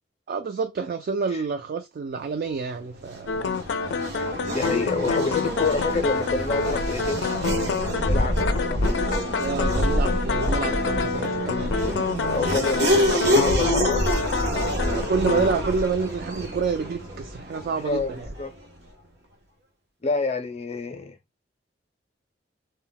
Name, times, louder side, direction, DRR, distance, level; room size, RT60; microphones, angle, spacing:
voice 1, 0.3-3.5 9.4-11.8 14.8-18.3, right 5 dB, 55° right, 0.3 m, -28 dB
Race car auto racing / Accelerating revving vroom, 3.0-18.6, equal, 85° right, 0.8 m, -27 dB
sound 1, 3.3-15.5, left 5 dB, 90° left, 0.4 m, -27 dB
voice 2, 4.5-7.3 8.0-8.8 12.2-14.2 17.8-18.5 20.0-21.2, left 3 dB, 40° left, 0.5 m, -28 dB
2.1 x 2.1 x 3.8 m
head